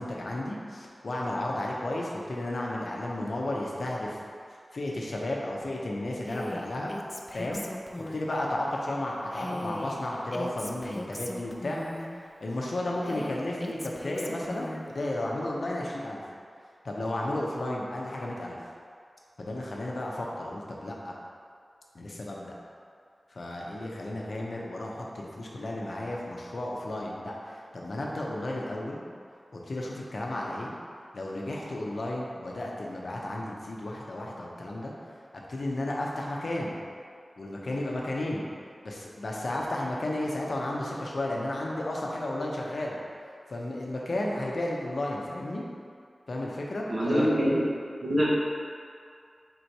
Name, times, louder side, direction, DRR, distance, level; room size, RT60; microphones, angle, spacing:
voice 1, 0.0-4.2 4.7-6.9 7.3-7.6 8.1-11.8 12.4-16.2 16.8-18.6 19.4-21.1 21.9-22.5 23.3-29.0 29.5-30.7 31.1-34.9 35.5-36.8 37.4-38.5 38.8-43.0 43.5-45.6 46.3-47.3, left 1 dB, 70° left, -3 dB, 0.6 m, -33 dB
Female speech woman speaking, 6.2-8.4 9.3-12.2 13.0-14.9, left 1 dB, 20° left, 0.3 m, -39 dB
voice 2, 46.9-47.6 48.0-48.3, equal, 65° right, -7 dB, 1.0 m, -24 dB
3.8 x 2.7 x 4.5 m, 2.3 s
wide cardioid pair, 90°, 0 cm